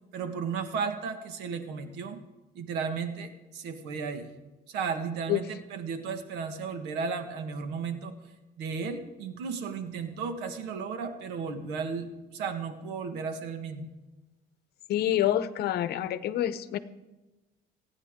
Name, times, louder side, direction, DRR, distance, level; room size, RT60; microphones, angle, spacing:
voice 1, 0.1-2.2 2.5-4.3 4.7-8.1 8.6-13.9, right 5 dB, 90° right, 7 dB, 1.6 m, -34 dB
voice 2, 14.9-16.8, left 12 dB, 70° left, 13 dB, 0.8 m, -27 dB
28.5 x 9.8 x 3.7 m, 1.1 s
cardioid pair, 110°, 17 cm